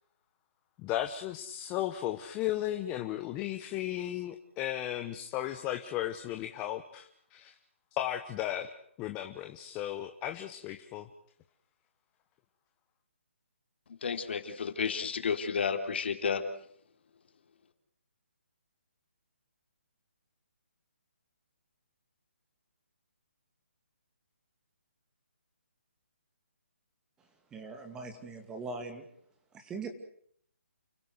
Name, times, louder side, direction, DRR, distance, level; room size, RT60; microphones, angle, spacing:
voice 1, 0.8-7.5 7.9-8.7 9.0-11.1, left 13 dB, 15° left, 7 dB, 1.0 m, -35 dB
voice 2, 14.0-16.4, left 6 dB, 55° left, 7 dB, 3.4 m, -31 dB
voice 3, 27.5-29.0 29.5-29.9, right 3 dB, 10° right, 5 dB, 2.5 m, -41 dB
29.5 x 16.0 x 8.0 m, 0.65 s
hypercardioid pair, 160°, 7 cm